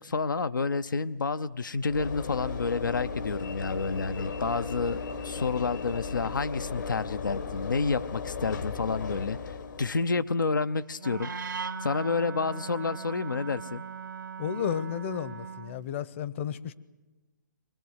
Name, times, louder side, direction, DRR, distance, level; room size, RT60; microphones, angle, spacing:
voice 1, 0.0-5.0 5.2-13.8, left 4 dB, 90° left, 11 dB, 0.8 m, -30 dB
Train / Engine / Alarm, 1.9-10.1, left 5 dB, 75° left, 1.8 m, -36 dB
Wind instrument woodwind instrument, 11.0-15.8, right 6 dB, 85° right, 1.2 m, -39 dB
voice 2, 14.4-16.7, left 8 dB, 40° left, 17 dB, 0.9 m, -32 dB
24.0 x 20.0 x 8.0 m, 1.1 s
hypercardioid pair, 150°, 10 cm